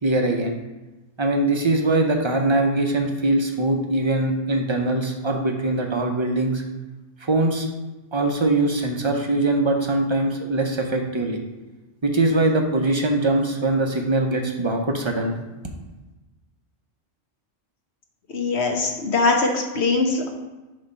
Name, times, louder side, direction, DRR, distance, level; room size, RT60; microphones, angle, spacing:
voice 1, 0.0-0.5 1.2-6.6 7.2-7.7 8.1-11.4 12.0-15.4, right 2 dB, 25° right, 3 dB, 0.7 m, -22 dB
voice 2, 18.3-20.3, left 3 dB, 60° left, 1 dB, 1.3 m, -22 dB
8.4 x 3.1 x 5.5 m, 1.1 s
omnidirectional pair, 1.3 m